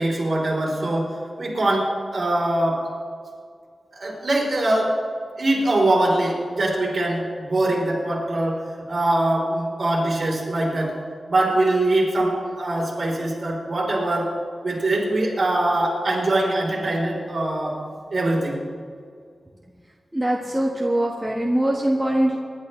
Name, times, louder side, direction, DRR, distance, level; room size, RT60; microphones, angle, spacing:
voice 1, 0.0-2.8 4.0-5.0 5.4-8.6 8.9-10.9 11.3-14.3 14.6-17.8 18.1-18.6, right 1 dB, 50° right, -3 dB, 3.8 m, -22 dB
voice 2, 20.1-22.4, right 1 dB, 10° right, -3 dB, 1.5 m, -22 dB
25.0 x 11.5 x 3.3 m, 2.2 s
wide cardioid pair, 145°, 0 cm